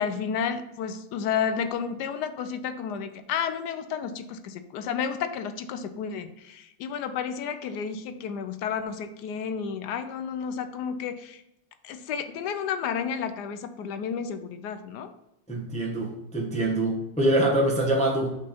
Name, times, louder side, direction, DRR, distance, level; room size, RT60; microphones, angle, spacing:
voice 1, 0.0-11.4 11.8-15.1, left 7 dB, 70° left, 10 dB, 1.1 m, -31 dB
voice 2, 15.5-18.4, right 1 dB, 5° left, -1 dB, 0.7 m, -25 dB
5.4 x 4.2 x 5.2 m, 0.86 s
omnidirectional pair, 2.0 m